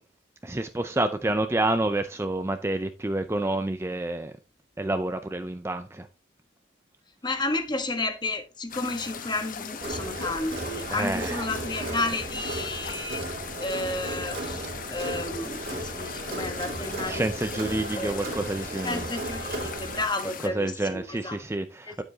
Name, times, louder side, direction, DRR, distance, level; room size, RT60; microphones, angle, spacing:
voice 1, 0.4-4.3 4.8-6.1 10.9-11.5 17.0-19.1 20.4-22.0, right 2 dB, 15° right, 0.5 m, -28 dB
voice 2, 7.2-13.2 13.6-14.6 14.9-18.2 18.8-21.4, left 2 dB, 25° left, 1.2 m, -32 dB
sound 1, 8.7-20.5, left 6 dB, 45° left, 1.0 m, -39 dB
Crowd, 9.8-20.0, right 2 dB, 50° right, 2.6 m, -35 dB
9.3 x 7.8 x 2.8 m
head